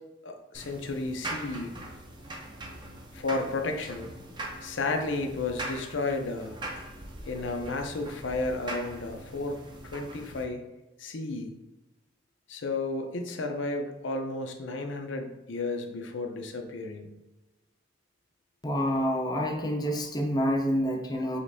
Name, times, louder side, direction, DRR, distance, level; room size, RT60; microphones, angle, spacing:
voice 1, 0.2-1.7 3.1-4.1 4.6-6.6 7.3-9.6 9.9-10.6 11.0-11.6 12.5-17.1, left 2 dB, 75° left, 5 dB, 0.6 m, -32 dB
sound 1, 0.5-10.4, right 1 dB, 25° right, 0.6 m, -41 dB
voice 2, 18.6-21.4, equal, 20° left, 1 dB, 0.5 m, -28 dB
5.1 x 3.2 x 2.6 m, 1.0 s
head